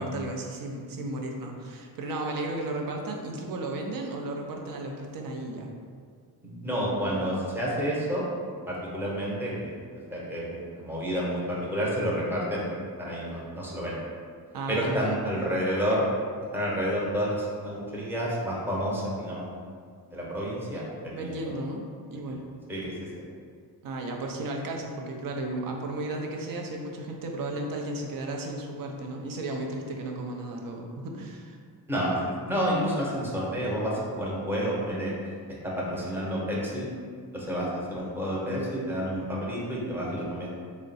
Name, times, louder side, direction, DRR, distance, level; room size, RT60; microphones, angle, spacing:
voice 1, 0.0-5.8 14.5-15.2 21.1-21.8 22.1-22.4 23.8-31.6, right 2 dB, 60° right, 1 dB, 0.6 m, -34 dB
voice 2, 6.4-8.2 8.7-9.8 10.1-14.0 14.7-16.0 16.5-19.5 20.1-21.5 22.1-22.3 22.7-23.2 31.9-32.2 32.5-35.1 35.6-36.9 37.3-40.6, equal, 5° right, -5 dB, 0.7 m, -30 dB
3.6 x 2.1 x 4.0 m, 2.1 s
cardioid pair, 110°, 38 cm